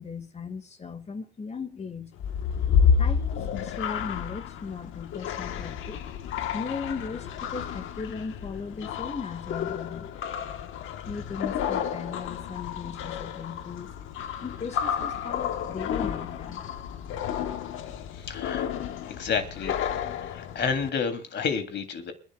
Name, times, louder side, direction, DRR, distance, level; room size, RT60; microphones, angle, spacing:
voice 1, 0.0-2.1 3.0-6.0 6.5-10.1 11.1-13.9 14.4-16.6, left 5 dB, 35° left, 2.1 m, -37 dB
sound 1, 2.2-20.9, left 7 dB, 85° left, 1.4 m, -30 dB
voice 2, 18.1-18.7 19.1-19.8 20.3-22.1, left 6 dB, 60° left, 3.2 m, -30 dB
29.0 x 12.0 x 2.4 m
cardioid pair, 90°, 20 cm